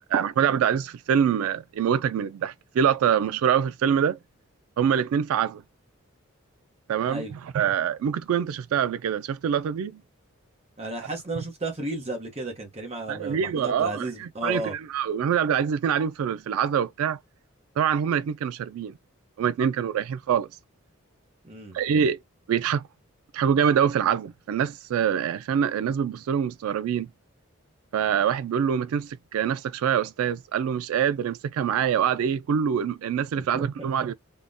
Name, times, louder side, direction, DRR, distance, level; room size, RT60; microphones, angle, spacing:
voice 1, 0.1-4.2 4.8-5.6 6.9-7.2 7.5-10.0 13.1-17.2 17.8-18.9 19.4-20.5 21.7-22.2 22.5-22.8 23.3-27.1 27.9-34.1, right 8 dB, 90° right, 0.3 m, -25 dB
voice 2, 10.8-14.7 21.4-21.8 33.5-34.1, right 2 dB, 30° right, 0.7 m, -33 dB
3.6 x 2.1 x 2.5 m
head